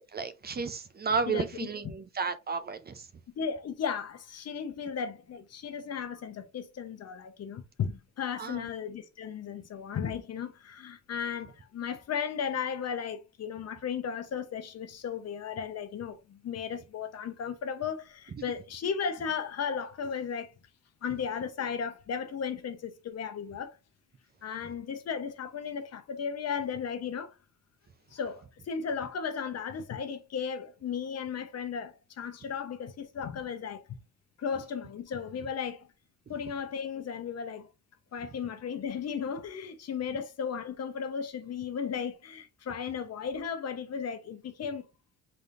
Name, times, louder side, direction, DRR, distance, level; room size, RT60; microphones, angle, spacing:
voice 1, 0.0-3.1 8.4-8.7 36.3-36.4, right 5 dB, 30° right, 0.6 m, -33 dB
voice 2, 3.4-20.5 21.0-23.8 24.4-27.3 28.1-34.0 34.4-35.9 36.3-37.7 38.1-44.9, left 7 dB, 55° left, 0.9 m, -35 dB
4.9 x 4.1 x 2.5 m
cardioid pair, 90°, 30 cm